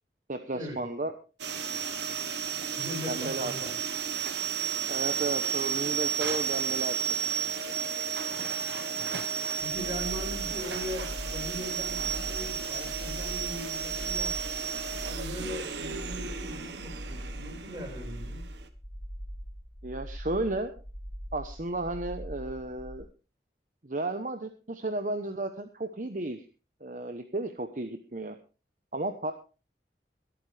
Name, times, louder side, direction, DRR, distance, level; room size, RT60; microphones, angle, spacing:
voice 1, 0.3-1.1 3.1-3.5 4.9-7.3 19.8-20.7 21.3-23.1 23.8-26.4 26.8-28.4 28.9-29.3, right 2 dB, 45° right, 7 dB, 1.0 m, -33 dB
sound 1, 1.4-18.7, right 7 dB, 85° right, 1.3 m, -33 dB
voice 2, 2.8-3.7 9.6-14.4 15.0-18.4, left 1 dB, 25° right, 1 dB, 5.3 m, -40 dB
sound 2, 9.6-23.0, equal, 15° left, 1.3 m, -41 dB
22.5 x 8.7 x 3.4 m, 0.34 s
head